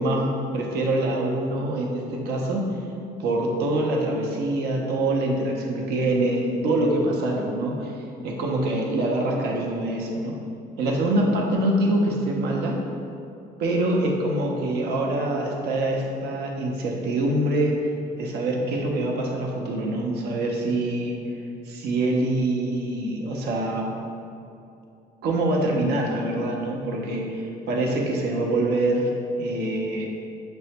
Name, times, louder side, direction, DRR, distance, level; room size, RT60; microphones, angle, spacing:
voice 1, 0.0-2.7 3.2-10.4 10.8-12.8 13.6-17.7 18.2-21.3 21.7-23.9 25.2-29.1 29.4-30.1, right 1 dB, 75° right, -1 dB, 0.6 m, -25 dB
6.0 x 2.2 x 2.8 m, 2.6 s
cardioid pair, 110°, 17 cm